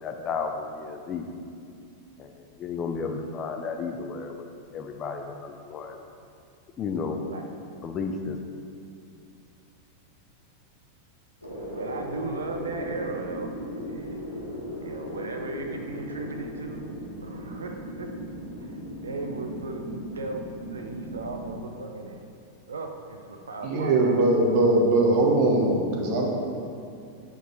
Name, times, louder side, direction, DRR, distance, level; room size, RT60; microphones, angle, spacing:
voice 1, 0.0-1.3 2.2-2.3 2.6-4.4 4.7-5.9 6.8-7.2 7.8-8.4, left 5 dB, 30° left, 5 dB, 0.5 m, -32 dB
sound 1, 11.4-21.5, equal, 85° left, 1.5 m, -37 dB
voice 2, 11.7-13.5 13.9-14.2 14.8-16.9 17.2-18.1 18.6-20.4 20.7-22.2 22.7-24.1, right 3 dB, 70° right, 3 dB, 0.5 m, -36 dB
voice 3, 23.6-26.3, right 2 dB, 45° right, 0 dB, 1.1 m, -21 dB
8.0 x 4.6 x 3.9 m, 2.4 s
figure-of-eight pair, 90°, 0 cm